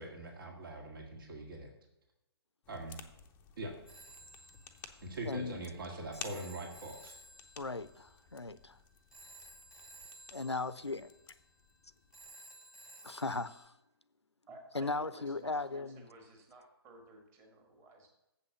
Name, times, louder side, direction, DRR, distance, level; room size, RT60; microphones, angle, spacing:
voice 1, 0.0-1.7 2.7-3.0 3.6-3.7 5.0-7.1, right 2 dB, 55° right, 2 dB, 2.0 m, -42 dB
sound 1, 2.6-12.4, left 8 dB, 15° left, 0.6 m, -54 dB
Telephone, 3.9-13.6, right 2 dB, 5° right, 1.3 m, -56 dB
voice 2, 5.3-5.9 7.6-8.8 10.3-11.1 13.0-13.7 14.7-16.0, left 3 dB, 85° left, 16 dB, 0.5 m, -37 dB
voice 3, 14.5-18.1, right 1 dB, 20° right, 2 dB, 1.8 m, -54 dB
7.4 x 5.7 x 7.3 m, 0.91 s
figure-of-eight pair, 125°, 14 cm